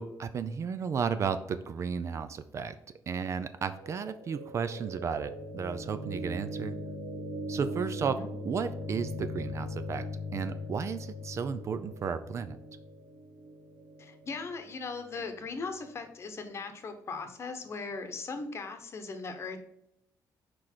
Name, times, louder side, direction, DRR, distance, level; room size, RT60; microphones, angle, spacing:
voice 1, 0.0-2.8 3.1-6.7 7.5-8.2 8.5-10.0 10.3-12.6, right 6 dB, 40° right, 11 dB, 0.4 m, -33 dB
sound 1, 3.7-15.7, left 1 dB, 85° right, 1.6 m, -40 dB
voice 2, 14.0-19.6, left 4 dB, 35° left, 7 dB, 1.0 m, -39 dB
6.0 x 4.9 x 4.4 m, 0.80 s
cardioid pair, 165°, 8 cm